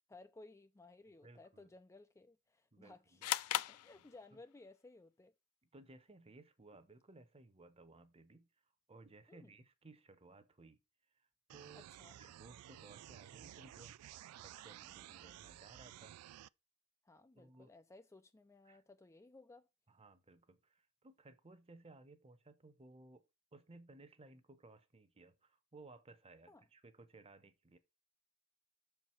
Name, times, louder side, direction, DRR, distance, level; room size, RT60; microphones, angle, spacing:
voice 1, 0.1-3.2 3.5-5.3 9.3-9.5 11.7-12.2 17.1-19.7 26.5-26.6, left 2 dB, 15° left, 0.4 m, -59 dB
voice 2, 1.1-1.7 2.7-3.5 4.0-4.1 4.3-4.4 5.6-8.5 8.9-10.8 11.1-11.9 12.1-14.0 14.4-16.1 17.3-17.7 18.6-18.8 19.9-23.2 23.5-27.8, right 2 dB, 25° right, 0.9 m, -60 dB
sound 1, 3.2-4.6, left 13 dB, 85° left, 0.4 m, -38 dB
sound 2, 11.5-16.5, right 12 dB, 85° right, 0.3 m, -54 dB
6.5 x 4.7 x 5.7 m
head